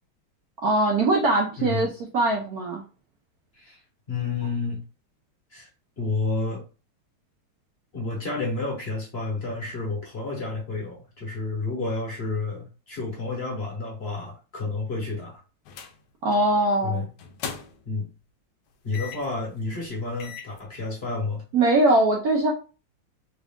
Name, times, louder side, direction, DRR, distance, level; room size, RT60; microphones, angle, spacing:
voice 1, 0.6-2.8 16.2-17.0 21.5-22.5, right 2 dB, 65° right, 0 dB, 0.9 m, -21 dB
voice 2, 4.1-4.8 5.5-5.7 6.0-6.6 7.9-15.4 16.8-17.1 17.8-18.1 18.8-21.4, left 3 dB, 40° left, -2 dB, 1.0 m, -30 dB
sound 1, 15.7-16.0 16.3-16.5 17.2-18.0 18.9-19.4 19.8-19.9 20.2-20.6, left 7 dB, 75° left, 1.0 m, -38 dB
3.6 x 2.5 x 3.5 m, 0.34 s
omnidirectional pair, 2.2 m